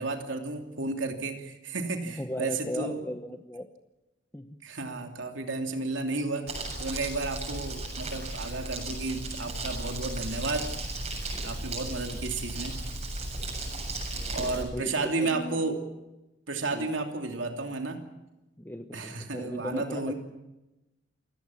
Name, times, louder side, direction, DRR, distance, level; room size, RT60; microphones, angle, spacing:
voice 1, 0.0-3.0 4.6-10.7 11.4-12.8 14.3-15.8 16.5-18.0 18.9-20.1, right 3 dB, 85° right, 4 dB, 2.8 m, -32 dB
voice 2, 2.0-3.7 4.3-4.5 11.3-11.5 12.0-12.2 14.2-15.6 16.7-16.9 18.6-20.1, left 1 dB, 10° left, 6 dB, 1.0 m, -37 dB
Crumpling crinkling, 6.5-14.6, right 2 dB, 35° right, 7.4 m, -35 dB
28.0 x 17.0 x 7.2 m, 1.0 s
head